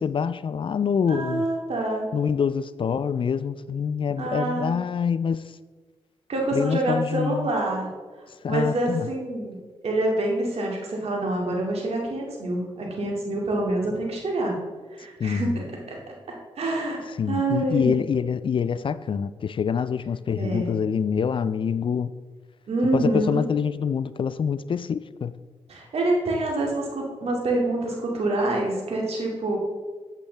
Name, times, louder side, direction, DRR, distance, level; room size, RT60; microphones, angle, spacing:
voice 1, 0.0-1.5 2.1-5.6 6.5-7.5 8.4-9.1 15.2-15.5 17.0-22.1 22.9-25.3, left 7 dB, 50° left, 0.4 m, -26 dB
voice 2, 1.1-2.0 4.2-4.7 6.3-7.9 8.5-14.5 14.9-16.0 16.6-17.0 17.3-18.0 20.4-20.8 22.7-23.5 25.7-29.6, right 2 dB, 60° right, 2.4 m, -26 dB
8.2 x 8.1 x 3.4 m
supercardioid pair, 40°, 11 cm